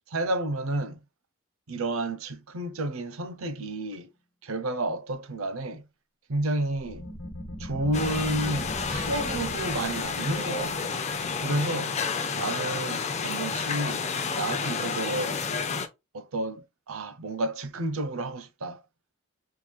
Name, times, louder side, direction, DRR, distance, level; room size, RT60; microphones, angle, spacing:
voice 1, 0.1-1.0 1.7-4.1 4.4-5.8 6.3-7.0 7.6-10.9 11.4-11.9 12.4-15.4 16.1-18.8, right 2 dB, 75° right, 0.6 m, -31 dB
sound 1, 6.8-12.1, left 1 dB, 65° left, 1.0 m, -40 dB
sound 2, 7.9-15.9, left 5 dB, 30° left, 0.5 m, -30 dB
3.7 x 3.1 x 2.3 m
head